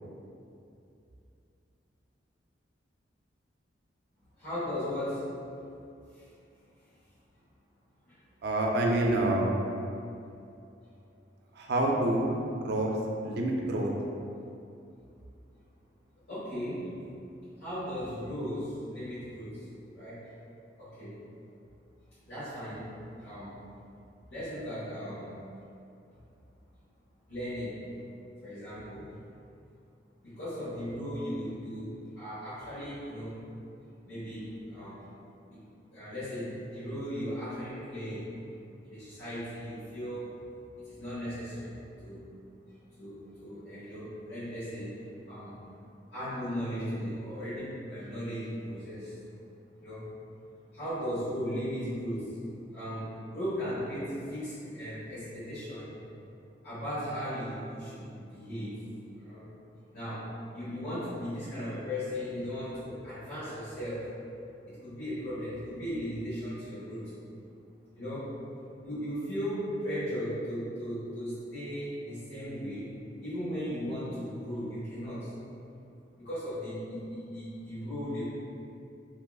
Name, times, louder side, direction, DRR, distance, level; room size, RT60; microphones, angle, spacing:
voice 1, 4.4-5.4 6.1-6.3 8.1-8.2 16.3-17.0 17.6-19.7 19.9-20.3 20.8-21.2 22.3-23.6 24.3-25.3 27.3-27.8 28.4-29.1 30.2-33.4 34.1-35.0 35.5-35.6 35.9-38.3 38.8-40.5 40.8-42.3 43.0-45.6 46.1-49.1 49.8-50.1 50.7-52.4 52.7-56.0 56.6-59.5 59.9-64.2 64.7-67.1 67.9-68.3 68.8-72.9 73.2-75.3 76.2-78.2, equal, 70° left, -15 dB, 1.2 m, -37 dB
voice 2, 8.4-9.6 11.6-12.3 12.6-13.0 13.2-13.9, right 1 dB, 60° right, -1 dB, 0.4 m, -27 dB
3.5 x 2.8 x 2.3 m, 2.6 s
head